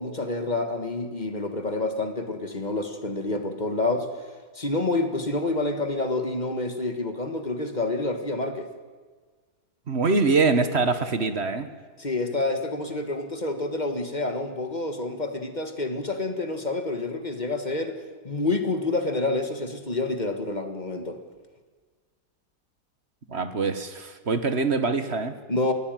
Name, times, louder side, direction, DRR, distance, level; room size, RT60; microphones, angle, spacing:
voice 1, 0.0-4.1 4.6-8.7 12.0-18.0 18.2-21.2 25.5-25.7, left 2 dB, 25° left, 7 dB, 1.8 m, -28 dB
voice 2, 9.9-11.7 23.3-25.3, right 4 dB, 40° right, 10 dB, 1.6 m, -24 dB
23.0 x 17.0 x 9.3 m, 1.5 s
omnidirectional pair, 1.7 m